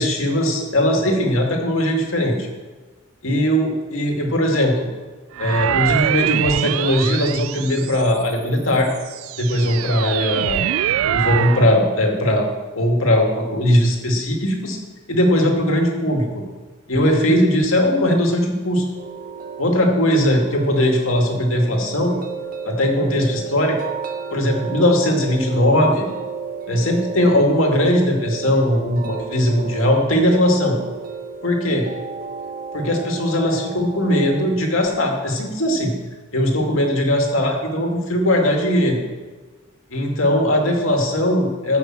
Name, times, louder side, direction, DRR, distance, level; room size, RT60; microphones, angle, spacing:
voice 1, 0.0-2.5 3.2-4.9 5.4-8.9 9.4-10.6 11.0-12.5 12.8-14.8 15.1-16.3 16.9-18.8 19.6-22.2 22.6-23.8 24.3-26.1 26.7-30.8 31.4-31.9 32.7-35.9 36.3-39.0 39.9-41.8, left 1 dB, 75° left, 1 dB, 2.3 m, -19 dB
sound 1, 5.3-8.3 8.9-11.7, right 11 dB, 80° right, 0.3 m, -24 dB
sound 2, 18.9-34.5, right 5 dB, 40° right, 1.0 m, -33 dB
14.0 x 6.0 x 7.6 m, 1.3 s
head